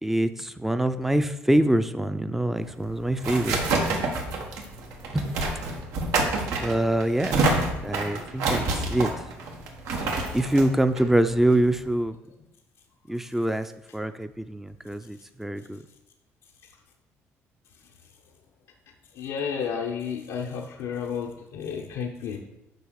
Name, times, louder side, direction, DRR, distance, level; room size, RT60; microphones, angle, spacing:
voice 1, 0.0-3.6 5.1-5.3 6.6-7.4 7.8-9.1 10.3-12.2 13.1-15.8, right 1 dB, 5° right, 11 dB, 0.5 m, -25 dB
sound 1, 2.6-11.9, right 2 dB, 90° right, 1.5 m, -28 dB
voice 2, 19.1-22.4, left 7 dB, 90° left, -1 dB, 0.9 m, -31 dB
6.8 x 5.0 x 6.4 m, 0.88 s
cardioid pair, 110°, 5 cm